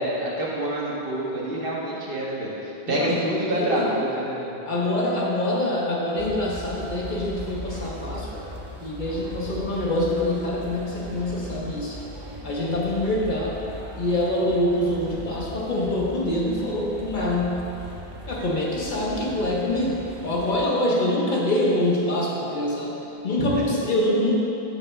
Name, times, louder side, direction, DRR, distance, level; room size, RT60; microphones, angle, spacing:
voice 1, 0.0-4.6 23.4-23.5, right 1 dB, 60° right, -4 dB, 1.1 m, -27 dB
voice 2, 2.9-3.2 3.5-3.9 4.7-12.0 12.4-13.6 14.0-17.7 18.2-23.0 23.2-24.3, left 1 dB, 50° left, -3 dB, 0.8 m, -25 dB
sound 1, 6.2-20.6, equal, 35° right, 0.5 m, -39 dB
6.0 x 3.2 x 5.5 m, 2.9 s
omnidirectional pair, 1.1 m